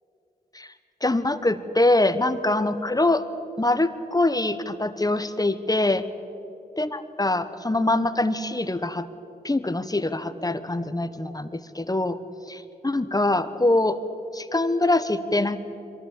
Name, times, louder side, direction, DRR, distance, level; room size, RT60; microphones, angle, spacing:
voice 1, 1.0-3.2 3.6-6.1 6.8-9.1 9.4-12.2 12.5-14.0 14.3-15.6, left 2 dB, 20° left, 11 dB, 1.3 m, -24 dB
22.5 x 15.0 x 8.7 m, 2.9 s
cardioid pair, 40°, 17 cm